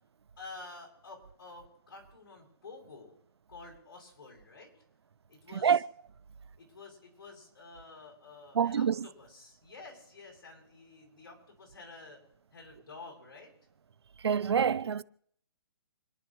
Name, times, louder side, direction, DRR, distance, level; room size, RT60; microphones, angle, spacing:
voice 1, 0.4-3.2 3.5-4.7 5.3-5.8 6.6-12.2 12.5-13.5, left 3 dB, 50° left, 7.7 m, -50 dB
voice 2, 8.6-9.0 14.2-15.0, right 7 dB, 80° right, 0.7 m, -26 dB
29.5 x 11.5 x 3.1 m
hypercardioid pair, 170°, 13 cm